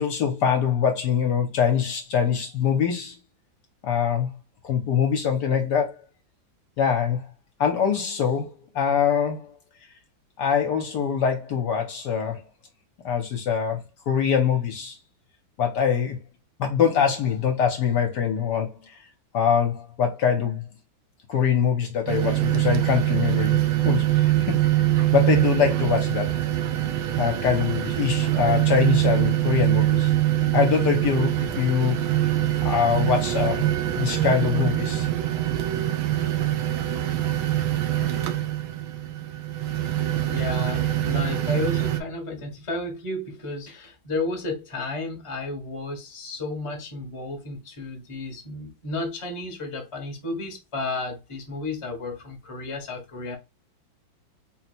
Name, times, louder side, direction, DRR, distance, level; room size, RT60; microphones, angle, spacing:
voice 1, 0.0-3.2 3.8-4.3 4.6-6.0 6.8-7.2 7.6-9.5 10.4-12.4 13.0-13.8 14.1-15.0 15.6-16.2 16.6-19.0 19.3-20.7 21.3-24.6 25.0-26.3 27.2-30.1 30.5-32.0 32.6-33.7 33.9-35.1, left 7 dB, 65° left, 1.1 m, -23 dB
sound 1, 22.1-42.0, right 14 dB, 85° right, 1.4 m, -24 dB
voice 2, 40.2-53.4, left 2 dB, 25° left, 0.7 m, -32 dB
4.0 x 2.1 x 4.2 m
omnidirectional pair, 2.1 m